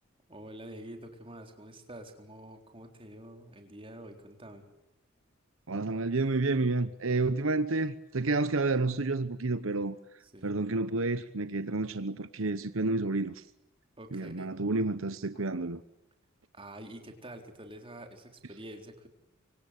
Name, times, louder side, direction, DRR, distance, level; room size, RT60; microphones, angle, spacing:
voice 1, 0.3-4.6 10.2-10.5 14.0-14.5 16.5-19.1, right 1 dB, 25° right, 4.0 m, -47 dB
voice 2, 5.7-9.9 10.4-13.4 14.1-15.8, right 3 dB, 70° right, 1.0 m, -30 dB
25.5 x 25.0 x 8.3 m
head